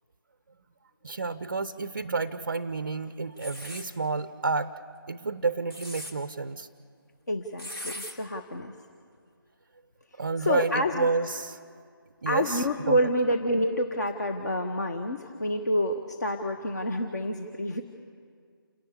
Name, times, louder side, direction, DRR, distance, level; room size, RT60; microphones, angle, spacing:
voice 1, 1.0-4.7 5.1-6.7 10.2-11.6 12.2-13.0, right 4 dB, 35° right, 14 dB, 0.5 m, -30 dB
sound 1, 3.4-3.9 5.5-6.1 7.6-8.1, equal, 80° left, 3.3 m, -39 dB
voice 2, 7.3-8.7 10.4-11.1 12.3-17.8, equal, 45° left, 5 dB, 1.1 m, -28 dB
28.5 x 11.0 x 8.5 m, 2.1 s
figure-of-eight pair, 155°, 12 cm